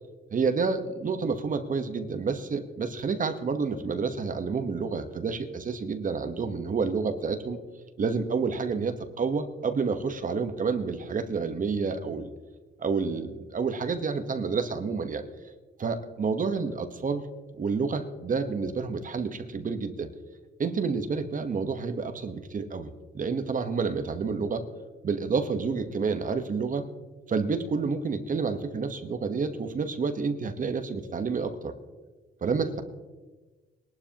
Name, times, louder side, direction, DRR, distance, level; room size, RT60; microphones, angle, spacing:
voice 1, 0.3-7.6 8.0-12.3 12.8-15.2 15.8-17.3 17.6-20.1 20.6-24.6 25.0-26.9 27.3-31.7 32.4-32.8, right 5 dB, 40° right, 8 dB, 1.2 m, -29 dB
21.0 x 12.0 x 3.0 m, 1.2 s
cardioid pair, 90°, 20 cm